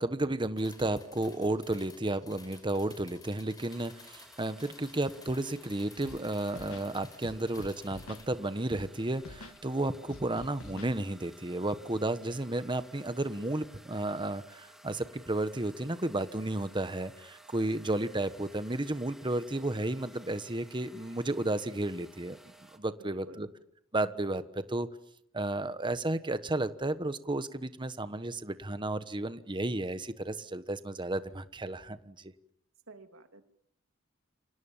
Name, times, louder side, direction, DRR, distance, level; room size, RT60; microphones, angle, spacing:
voice 1, 0.0-22.4 22.7-23.5 23.9-24.9 25.3-32.3, right 2 dB, 25° right, 11 dB, 1.2 m, -33 dB
sound 1, 0.6-8.3, left 3 dB, 20° left, 6.2 m, -55 dB
sound 2, 3.7-22.8, right 1 dB, ahead, 2.6 m, -56 dB
Scratching (performance technique), 6.0-6.2 6.5-6.9 7.2-8.3 8.7-8.9 9.2-9.6 10.1-11.0, left 2 dB, 85° left, 1.6 m, -46 dB
voice 2, 22.8-23.5 32.9-33.4, right 2 dB, 75° right, 7 dB, 2.9 m, -52 dB
29.5 x 26.5 x 7.3 m, 0.72 s
head